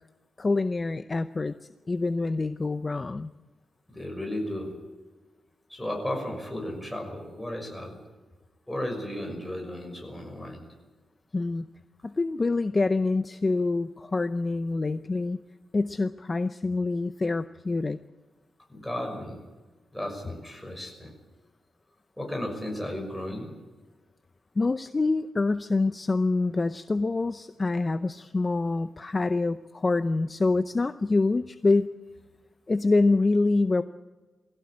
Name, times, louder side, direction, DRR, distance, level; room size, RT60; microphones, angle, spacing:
voice 1, 0.4-1.5 1.9-3.3 11.3-11.7 12.0-15.4 15.7-18.0 24.6-31.9 32.7-33.8, left 3 dB, 25° left, 11 dB, 0.6 m, -26 dB
voice 2, 3.9-4.7 5.7-8.0 8.7-10.6 18.7-19.4 19.9-21.1 22.2-23.5, left 1 dB, 5° left, 1 dB, 6.3 m, -34 dB
21.0 x 16.5 x 8.7 m, 1.3 s
wide cardioid pair, 130°, 0 cm